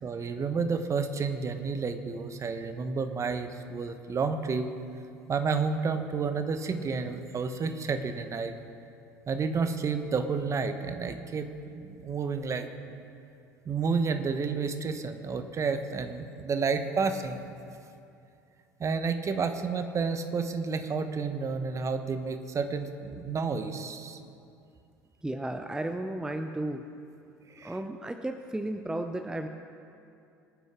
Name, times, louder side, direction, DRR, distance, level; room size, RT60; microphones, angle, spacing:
voice 1, 0.0-4.7 5.3-8.5 9.3-12.7 13.7-17.4 18.8-24.2 27.6-27.7, right 5 dB, 30° right, 8 dB, 1.1 m, -30 dB
voice 2, 25.2-26.9 27.6-29.5, right 1 dB, 5° right, 6 dB, 0.7 m, -34 dB
24.5 x 9.4 x 3.7 m, 2.6 s
figure-of-eight pair, 65°, 10 cm